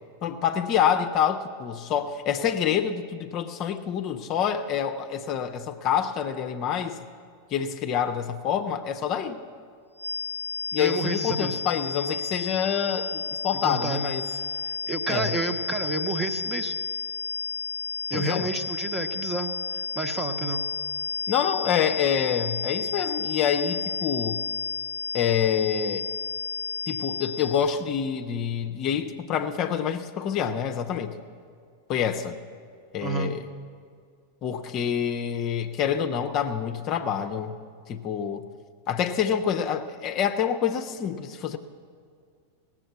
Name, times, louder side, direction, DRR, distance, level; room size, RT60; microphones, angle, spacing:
voice 1, 0.2-7.0 7.5-9.4 10.7-14.3 15.1-15.3 18.1-18.5 21.3-24.4 25.1-26.1 26.9-31.2 31.9-32.4 32.9-33.5 34.4-37.6 37.9-38.5 38.9-41.6, left 8 dB, 35° left, 8 dB, 0.7 m, -27 dB
sound 1, 10.0-27.7, left 4 dB, 90° left, 0.5 m, -32 dB
voice 2, 10.8-11.6 13.6-14.4 14.9-16.8 18.1-19.6 19.9-20.6 33.0-33.3, right 3 dB, 20° right, 7 dB, 1.0 m, -30 dB
17.5 x 7.4 x 8.1 m, 2.2 s
figure-of-eight pair, 90°, 0 cm